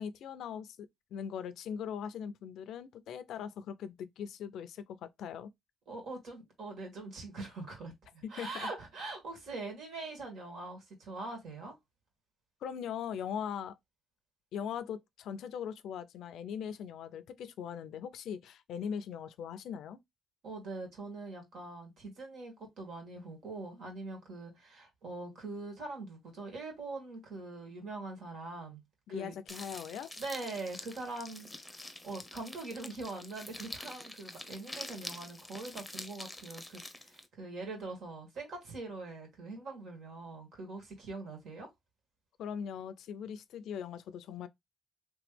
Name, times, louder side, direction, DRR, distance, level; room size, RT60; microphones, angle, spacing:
voice 1, 0.0-5.5 8.2-8.7 12.6-13.8 14.5-20.0 29.1-30.1 42.4-44.5, left 8 dB, 80° left, 0.4 m, -40 dB
voice 2, 5.9-11.7 20.4-28.8 29.1-29.3 30.2-41.7, right 3 dB, 70° right, 2.0 m, -43 dB
sound 1, 29.5-37.3, left 1 dB, 5° left, 0.7 m, -46 dB
3.3 x 3.1 x 3.2 m
cardioid pair, 90°, 0 cm